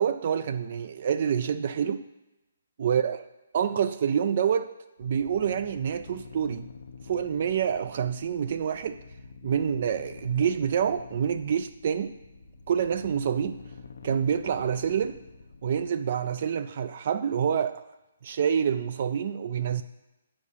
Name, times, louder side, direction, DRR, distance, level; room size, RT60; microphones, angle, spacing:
voice 1, 0.0-2.0 2.8-3.2 3.5-4.7 5.0-6.7 7.0-9.0 9.4-12.1 12.7-13.6 14.0-15.2 15.6-17.8 18.2-19.8, right 8 dB, 45° right, 11 dB, 0.3 m, -27 dB
sound 1, 5.0-15.9, left 4 dB, 80° left, 0.7 m, -47 dB
8.2 x 4.9 x 5.6 m, 0.97 s
hypercardioid pair, 160°, 0 cm